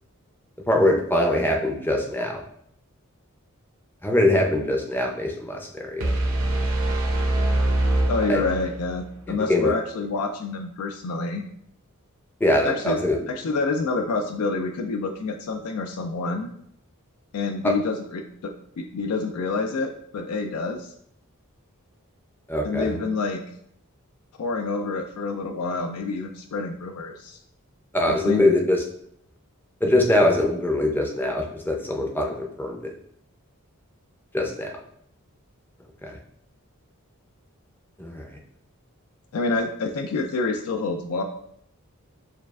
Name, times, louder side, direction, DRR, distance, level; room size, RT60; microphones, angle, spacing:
voice 1, 0.7-2.4 4.0-6.0 8.3-8.4 9.3-9.7 12.4-13.2 22.5-22.9 27.9-28.8 29.8-32.9 34.3-34.7 36.0-36.1 38.0-38.2, left 1 dB, 10° left, 1 dB, 0.5 m, -22 dB
sound 1, 6.0-9.0, right 1 dB, 65° right, 0.6 m, -23 dB
voice 2, 8.1-11.4 12.6-13.0 13.3-16.5 17.3-20.9 22.6-23.4 24.4-27.4 28.1-28.5 39.3-41.2, left 3 dB, 80° left, 5 dB, 0.4 m, -27 dB
6.8 x 2.4 x 2.4 m, 0.70 s
head